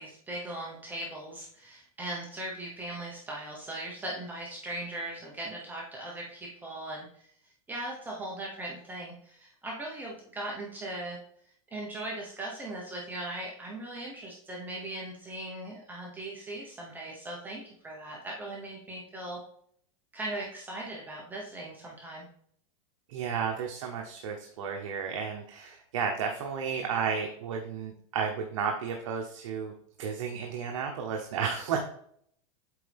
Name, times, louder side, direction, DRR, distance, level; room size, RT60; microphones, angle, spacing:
voice 1, 0.0-7.3 7.7-11.2 11.7-19.4 20.1-22.2, right 1 dB, 10° right, -3 dB, 1.1 m, -39 dB
voice 2, 23.1-29.7 30.0-31.8, right 6 dB, 70° right, 2 dB, 1.0 m, -32 dB
8.1 x 4.4 x 3.5 m, 0.65 s
supercardioid pair, 150°, 17 cm